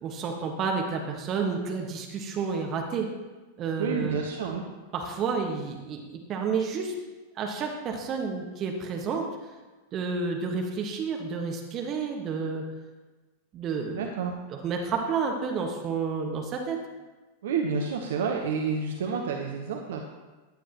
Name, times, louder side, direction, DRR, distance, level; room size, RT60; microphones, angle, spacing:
voice 1, 0.0-3.1 3.6-4.2 4.9-6.0 6.3-6.9 7.4-9.3 9.9-12.6 13.5-14.0 14.5-16.8, right 5 dB, 30° right, 2 dB, 1.4 m, -30 dB
voice 2, 3.8-4.6 13.9-14.4 17.4-20.0, right 5 dB, 60° right, 3 dB, 0.9 m, -29 dB
15.0 x 10.0 x 3.0 m, 1.2 s
figure-of-eight pair, 90°, 0 cm